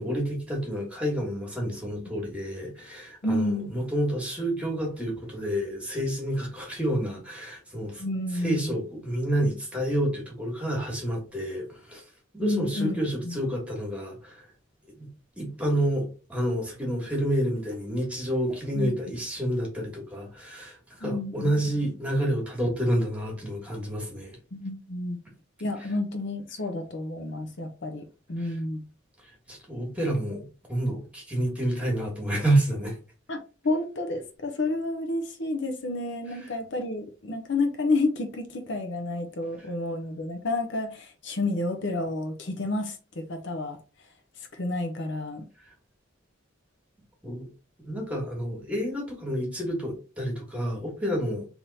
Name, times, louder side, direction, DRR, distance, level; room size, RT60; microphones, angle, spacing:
voice 1, 0.0-8.1 8.3-12.0 12.3-14.5 15.0-15.1 15.4-24.4 28.4-28.6 29.5-33.0 47.2-47.5 47.8-51.5, right 1 dB, 5° right, 1.5 m, -29 dB
voice 2, 3.2-3.7 8.0-8.8 12.4-13.4 18.7-18.9 21.0-21.9 24.5-25.2 25.6-28.8 33.3-43.8 44.5-45.4, left 2 dB, 60° left, 0.7 m, -30 dB
3.6 x 3.0 x 4.0 m
head